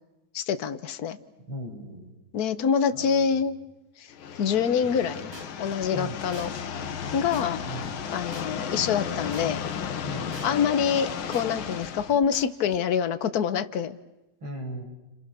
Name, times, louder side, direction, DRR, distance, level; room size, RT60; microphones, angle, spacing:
voice 1, 0.3-1.2 2.3-3.6 4.0-4.1 4.4-5.3 5.6-6.5 7.1-7.8 8.1-9.6 10.4-14.0, left 7 dB, 50° left, 11 dB, 1.5 m, -26 dB
voice 2, 1.5-2.1 2.9-3.2 5.9-6.2 7.7-7.9 10.0-10.4 14.4-14.9, equal, 75° right, 1 dB, 6.7 m, -37 dB
sound 1, 4.1-12.2, left 7 dB, 75° left, 2.1 m, -34 dB
sound 2, 4.8-5.9 6.3-6.5 6.8-9.9 10.3-10.5 10.8-12.8, right 1 dB, 15° right, 1.7 m, -46 dB
29.5 x 29.0 x 6.9 m, 1.0 s
omnidirectional pair, 2.3 m